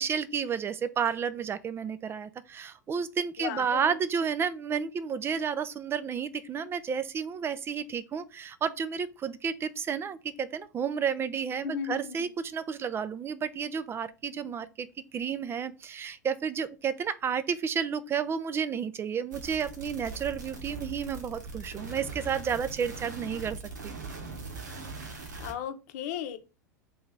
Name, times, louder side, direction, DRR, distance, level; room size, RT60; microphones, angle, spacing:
voice 1, 0.0-14.9 15.1-23.6 23.8-24.0, right 7 dB, 25° right, 0.4 m, -31 dB
voice 2, 3.4-3.9 11.6-12.3 25.4-26.4, left 9 dB, 60° left, 0.8 m, -35 dB
sound 1, 19.3-25.5, right 3 dB, 80° right, 1.2 m, -41 dB
3.3 x 2.9 x 3.8 m
hypercardioid pair, 90°, 10 cm